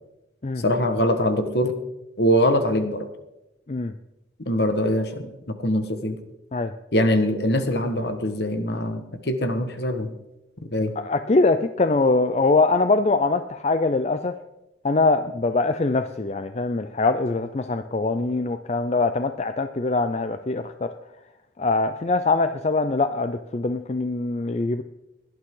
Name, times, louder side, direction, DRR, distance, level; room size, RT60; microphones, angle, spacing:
voice 1, 0.6-1.8 2.2-3.1 4.4-6.2 6.9-10.1 10.7-10.9, equal, 60° left, 8 dB, 1.5 m, -23 dB
voice 2, 11.0-14.3 14.8-20.9 21.6-24.8, left 3 dB, 35° left, 9 dB, 0.5 m, -23 dB
17.5 x 11.5 x 3.8 m, 0.92 s
head